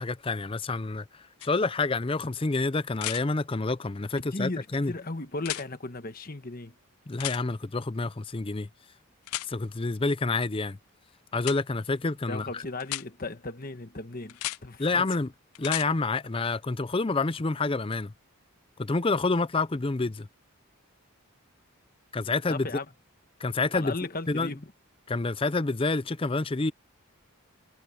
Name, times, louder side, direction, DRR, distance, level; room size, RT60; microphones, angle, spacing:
voice 1, 0.0-4.9 7.1-8.7 9.4-10.8 11.3-12.6 14.8-15.3 15.6-18.1 18.8-20.3 22.1-22.7 23.4-23.9 24.3-24.5 25.1-26.7, left 3 dB, 25° left, 0.5 m, -28 dB
sound 1, 1.4-1.5 3.0-3.2 5.4-5.7 7.2-7.4 9.3-9.5 11.4-11.6 12.8-13.1 14.3-14.6 15.6-15.9 17.9-18.0, left 18 dB, 85° left, 0.3 m, -33 dB
voice 2, 4.3-6.7 12.3-15.1 22.5-22.9 23.7-24.7, left 2 dB, 40° left, 1.3 m, -36 dB
head